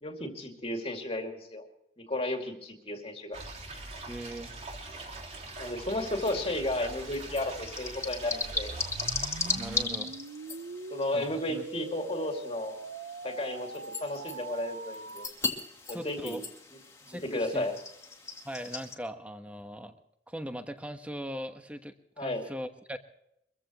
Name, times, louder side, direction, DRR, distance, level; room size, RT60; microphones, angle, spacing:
voice 1, 0.0-1.7 2.0-3.4 5.6-8.7 10.9-12.8 13.2-15.3 15.9-16.4 17.1-17.7 22.2-22.5, left 1 dB, 35° left, 3 dB, 2.4 m, -33 dB
sound 1, 3.3-9.8, right 2 dB, 40° right, 3.6 m, -43 dB
voice 2, 4.1-4.5 9.5-10.1 11.1-11.7 15.9-16.4 17.1-17.7 18.4-19.9 20.3-23.0, equal, 10° right, 7 dB, 1.2 m, -40 dB
sound 2, 6.1-19.0, left 3 dB, 15° left, 2.1 m, -38 dB
sound 3, 8.4-15.3, right 3 dB, 65° right, 0.7 m, -42 dB
24.0 x 15.0 x 3.1 m, 0.77 s
head